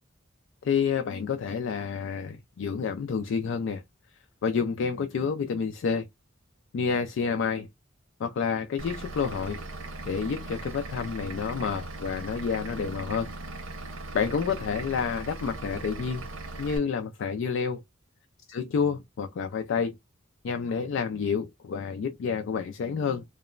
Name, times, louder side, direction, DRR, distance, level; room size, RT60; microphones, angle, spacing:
voice 1, 0.6-3.8 4.4-6.1 6.7-7.7 8.2-9.6 10.1-13.3 14.1-16.3 16.6-17.8 18.5-19.9 20.4-23.2, left 6 dB, 65° left, 0.3 m, -29 dB
Vehicle / Engine, 8.8-16.8, right 2 dB, 90° right, 0.9 m, -39 dB
2.9 x 2.1 x 2.3 m
head